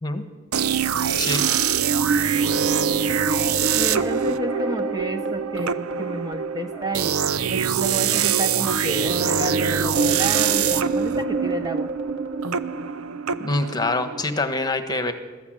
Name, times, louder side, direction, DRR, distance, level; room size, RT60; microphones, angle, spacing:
sound 1, 0.5-14.2, right 7 dB, 80° right, 0.7 m, -24 dB
sound 2, 2.3-7.1 7.4-7.5 8.1-12.9, right 3 dB, 60° right, 2.4 m, -31 dB
voice 1, 3.7-11.9, right 1 dB, 20° right, 7 dB, 1.0 m, -31 dB
voice 2, 13.4-15.1, left 2 dB, 20° left, 8 dB, 1.4 m, -25 dB
21.0 x 14.0 x 9.1 m, 1.3 s
head